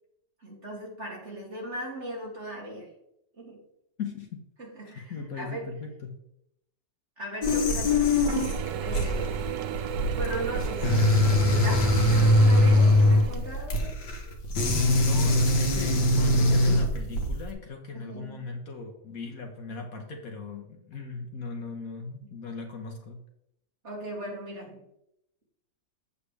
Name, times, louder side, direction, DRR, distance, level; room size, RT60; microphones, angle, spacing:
voice 1, 0.4-2.9 3.3-3.6 4.6-5.7 7.2-8.2 8.8-9.4 10.1-11.0 11.4-13.9 17.9-18.5 22.2-22.4 23.8-24.8, right 1 dB, 40° right, -3 dB, 2.9 m, -38 dB
voice 2, 4.0-4.4 4.9-6.2 14.7-23.2, left 4 dB, 55° left, 3 dB, 1.4 m, -38 dB
sound 1, 7.4-17.5, left 1 dB, 75° left, 1.9 m, -22 dB
Mechanisms / Drill, 8.3-13.8, right 10 dB, 85° right, 1.4 m, -34 dB
8.3 x 7.6 x 3.4 m, 0.77 s
omnidirectional pair, 1.9 m